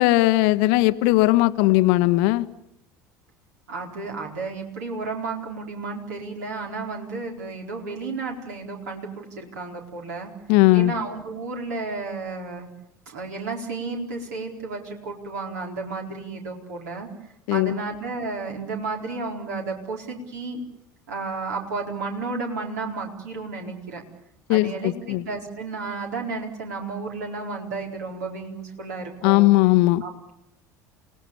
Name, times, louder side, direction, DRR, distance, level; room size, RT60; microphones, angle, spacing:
voice 1, 0.0-2.5 10.5-10.9 17.5-17.8 24.5-25.2 29.2-30.0, left 19 dB, 55° left, 14 dB, 0.9 m, -18 dB
voice 2, 3.7-10.3 10.7-12.7 13.1-17.1 17.5-20.6 21.1-24.0 24.5-29.5 30.0-30.1, right 3 dB, 65° right, 1 dB, 4.5 m, -32 dB
29.0 x 19.0 x 7.0 m, 0.77 s
figure-of-eight pair, 65°, 10 cm